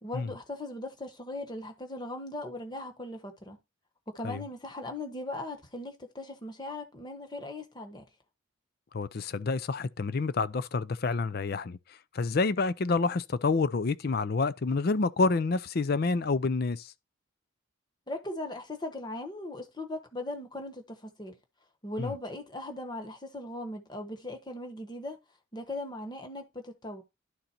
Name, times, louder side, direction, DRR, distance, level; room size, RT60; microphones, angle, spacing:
voice 1, 0.0-3.6 4.1-8.0 18.1-21.4 21.8-25.2 25.5-27.0, left 1 dB, 20° left, 1.2 m, -39 dB
voice 2, 8.9-11.8 12.1-16.9 22.0-22.1, left 4 dB, 45° left, 0.4 m, -28 dB
11.5 x 3.9 x 4.3 m
head